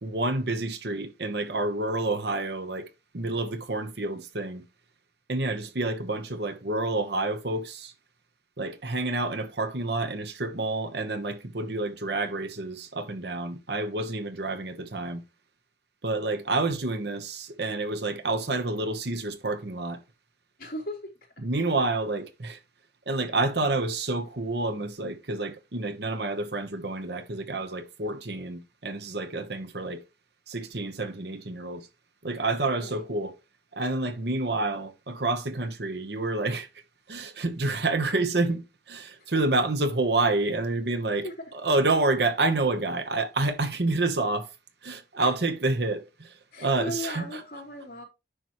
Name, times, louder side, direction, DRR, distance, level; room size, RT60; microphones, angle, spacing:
voice 1, 0.0-2.9 3.1-4.6 5.3-7.9 8.6-15.2 16.0-20.0 21.4-22.6 23.1-30.0 30.5-31.9 32.2-33.4 33.7-36.7 37.1-44.5 44.8-47.4, right 2 dB, 65° right, 1.1 m, -28 dB
voice 2, 20.6-21.1 32.8-33.0 39.2-39.4 41.2-41.4 45.2-45.3 46.5-48.0, left 1 dB, 50° left, 3.5 m, -37 dB
9.9 x 6.1 x 3.1 m
head